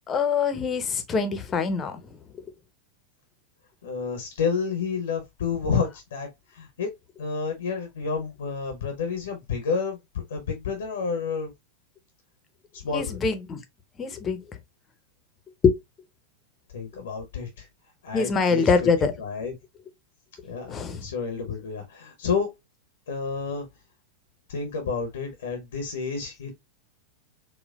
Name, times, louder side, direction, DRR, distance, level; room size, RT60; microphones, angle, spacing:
voice 1, 0.1-2.0 12.9-13.6 14.0-14.4 15.6-15.8 18.1-19.1 20.7-21.1, left 5 dB, 20° left, 0.6 m, -24 dB
voice 2, 3.8-6.9 7.2-11.5 12.7-13.2 16.7-17.7 18.0-19.5 20.4-22.5 23.1-23.7 24.5-26.5, left 5 dB, 65° left, 0.7 m, -30 dB
4.2 x 2.1 x 2.3 m
figure-of-eight pair, 90°, 0 cm